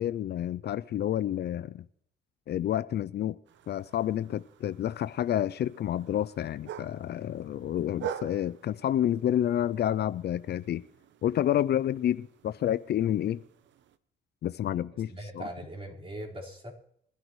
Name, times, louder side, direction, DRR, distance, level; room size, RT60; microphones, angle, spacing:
voice 1, 0.0-1.8 2.5-3.4 3.7-10.8 11.2-13.4 14.4-15.5, left 11 dB, 55° left, 0.5 m, -29 dB
sound 1, 3.5-14.0, right 9 dB, 70° right, 0.8 m, -46 dB
voice 2, 15.1-16.7, right 1 dB, 30° right, 4.6 m, -40 dB
22.5 x 12.0 x 3.1 m
cardioid pair, 90°, 20 cm